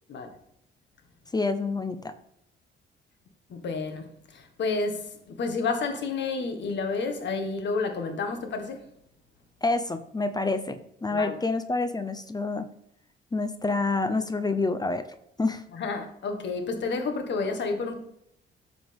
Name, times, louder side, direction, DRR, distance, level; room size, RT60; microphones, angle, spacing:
voice 1, 1.3-2.1 9.6-12.7 13.3-15.0 15.4-15.6, left 3 dB, 20° left, 0.7 m, -27 dB
voice 2, 3.5-8.8 11.1-11.4 15.7-18.0, left 4 dB, 65° left, 1.8 m, -30 dB
12.0 x 7.1 x 3.6 m
cardioid pair, 90°, 20 cm